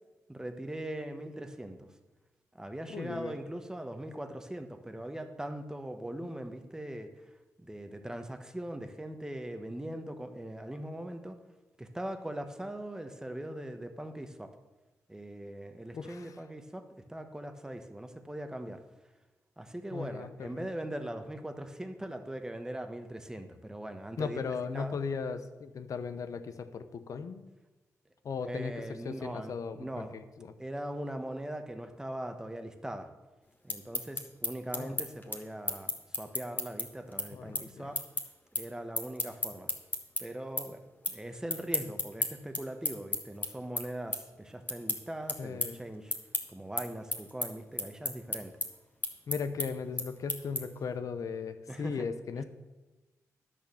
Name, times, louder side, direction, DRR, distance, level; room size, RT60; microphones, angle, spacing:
voice 1, 0.3-1.8 2.5-7.2 7.6-11.4 11.8-14.5 15.1-18.8 19.6-25.0 28.5-30.1 30.6-33.1 33.6-38.0 38.5-39.7 40.2-40.8 41.1-46.1 46.5-48.5 51.7-52.1, right 1 dB, 10° right, 7 dB, 1.1 m, -40 dB
voice 2, 2.9-3.3 15.9-16.3 19.9-20.7 24.2-27.4 28.2-30.5 34.7-35.0 37.3-37.9 45.4-45.8 49.3-52.4, left 5 dB, 70° left, 10 dB, 0.8 m, -37 dB
sound 1, 33.5-40.2 40.6-41.2 41.5-50.9, left 2 dB, 30° left, 1.5 m, -34 dB
10.5 x 6.6 x 7.1 m, 1.1 s
cardioid pair, 85°, 6 cm